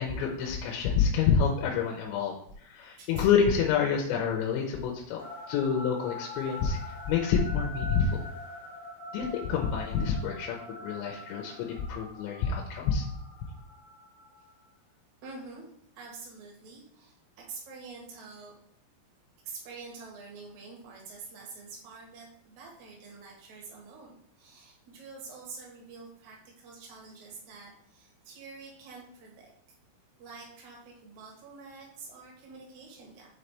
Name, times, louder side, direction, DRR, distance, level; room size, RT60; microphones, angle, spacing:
voice 1, 0.0-2.3 2.6-5.2 5.5-8.2 9.1-13.1, left 6 dB, 80° left, 0 dB, 2.9 m, -28 dB
sound 1, 5.2-14.6, left 1 dB, 65° left, 1.9 m, -44 dB
voice 2, 15.2-15.7 15.9-18.5 19.4-29.5 30.2-33.3, right 4 dB, 60° right, -2 dB, 2.0 m, -47 dB
7.1 x 4.0 x 3.3 m, 0.69 s
omnidirectional pair, 5.5 m